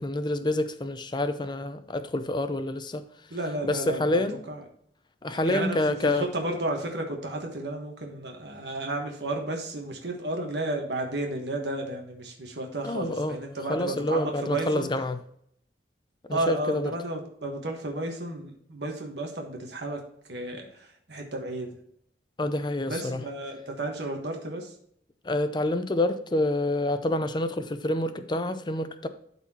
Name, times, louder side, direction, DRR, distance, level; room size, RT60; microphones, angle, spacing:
voice 1, 0.0-3.0 3.6-4.3 5.2-6.3 12.8-13.4 13.7-15.2 16.3-16.9 22.4-23.2 25.2-29.1, left 1 dB, 25° left, 0.6 m, -27 dB
voice 2, 3.3-4.2 4.5-4.6 5.3-14.9 16.3-20.0 20.3-21.8 22.9-24.7, right 1 dB, 70° right, 1.4 m, -33 dB
12.5 x 4.3 x 2.9 m
head